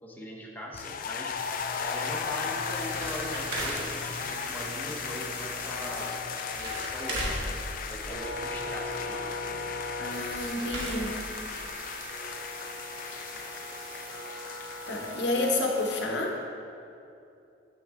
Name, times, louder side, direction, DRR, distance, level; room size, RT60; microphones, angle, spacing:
voice 1, 0.0-1.4 1.8-9.7, equal, 10° left, -3 dB, 0.8 m, -40 dB
sound 1, 0.7-15.3, left 7 dB, 50° left, 0.3 m, -37 dB
sound 2, 1.3-16.0, left 1 dB, 10° right, 1.2 m, -40 dB
sound 3, 2.6-4.1 5.9-6.0 6.2-8.5 9.7-9.8 10.0-11.7 12.1-12.2 12.4-12.5 13.0-13.1 13.3-13.4, right 1 dB, 75° right, 1.3 m, -37 dB
voice 2, 10.0-11.2 14.9-16.3, left 2 dB, 65° left, 1 dB, 0.8 m, -29 dB
7.8 x 6.0 x 3.6 m, 2.6 s
head